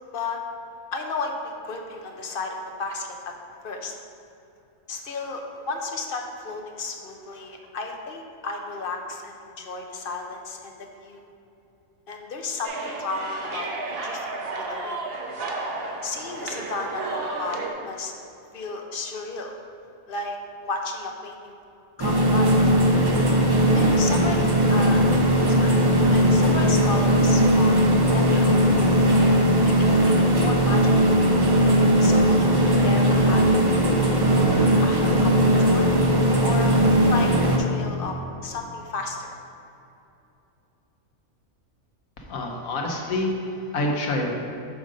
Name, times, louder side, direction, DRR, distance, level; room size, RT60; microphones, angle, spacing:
voice 1, 0.9-3.3 3.6-3.9 4.9-11.3 12.1-13.7 14.0-15.0 16.0-18.1 18.5-19.5 20.1-20.4 20.6-21.5 22.0-22.6 23.7-25.0 25.5-25.8 26.1-27.9 28.1-29.0 29.6-31.1 32.0-36.0 36.4-37.3 37.6-38.2 38.4-39.4, left 3 dB, 50° left, 3 dB, 0.7 m, -33 dB
sound 1, 12.6-17.7, right 3 dB, 50° right, 0.9 m, -32 dB
sound 2, 22.0-37.6, equal, 25° right, 0.5 m, -19 dB
voice 2, 42.2-44.4, left 1 dB, 80° left, 1 dB, 1.4 m, -27 dB
6.4 x 5.1 x 5.0 m, 2.8 s
omnidirectional pair, 1.4 m